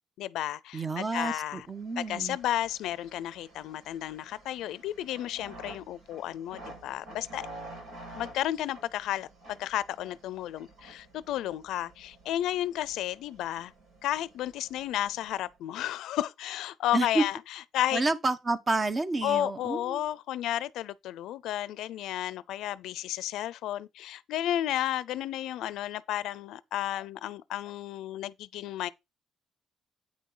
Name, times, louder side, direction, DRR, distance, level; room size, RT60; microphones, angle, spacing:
voice 1, 0.2-1.7 2.0-7.4 8.1-13.7 14.0-18.0 19.2-28.9, left 13 dB, 85° left, 0.5 m, -32 dB
voice 2, 0.7-2.4 16.9-17.2 17.9-20.0, right 3 dB, 30° right, 1.1 m, -29 dB
sound 1, 1.7-15.6, right 2 dB, 85° right, 5.7 m, -50 dB
9.0 x 6.3 x 3.9 m
cardioid pair, 90°, 0 cm